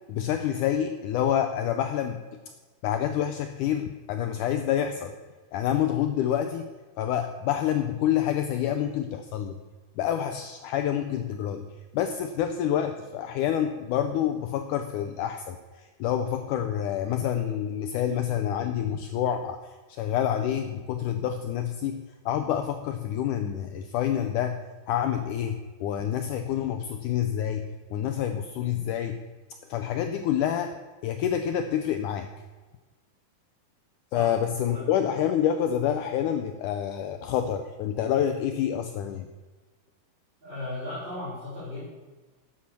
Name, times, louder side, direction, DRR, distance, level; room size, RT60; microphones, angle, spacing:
voice 1, 0.1-2.2 2.8-5.2 5.5-6.7 7.0-9.6 10.0-11.7 11.9-19.6 19.9-29.2 29.7-30.8 31.0-32.3 34.1-39.3, left 10 dB, 90° left, 7 dB, 1.7 m, -27 dB
voice 2, 34.6-34.9 40.4-41.8, left 2 dB, 15° right, -11 dB, 4.2 m, -36 dB
12.0 x 8.7 x 6.1 m, 1.3 s
omnidirectional pair, 4.3 m